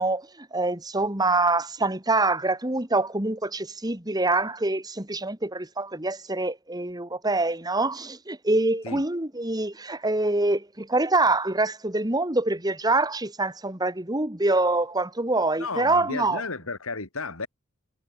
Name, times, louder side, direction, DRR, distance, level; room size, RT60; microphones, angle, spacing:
voice 1, 0.0-16.4, right 2 dB, 20° right, 2.3 m, -25 dB
voice 2, 15.6-17.5, left 3 dB, 80° left, 3.2 m, -33 dB
head